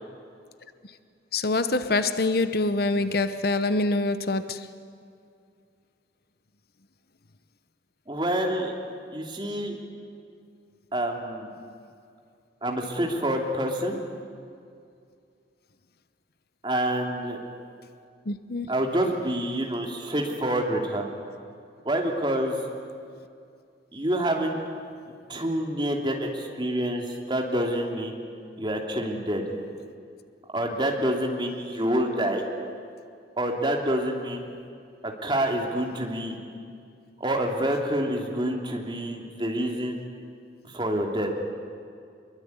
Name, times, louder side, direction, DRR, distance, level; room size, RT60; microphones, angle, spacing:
voice 1, 1.3-4.7 18.2-18.7, left 2 dB, 55° left, 11 dB, 0.9 m, -25 dB
voice 2, 8.1-8.7 9.1-9.8 10.9-11.5 12.6-14.0 16.6-17.4 18.7-21.1 21.8-22.6 23.9-24.6 25.3-28.2 28.6-29.4 30.5-32.4 33.4-34.4 35.0-36.4 37.2-40.0 40.7-41.3, right 1 dB, 25° right, 1 dB, 3.0 m, -27 dB
25.0 x 22.5 x 9.6 m, 2.3 s
head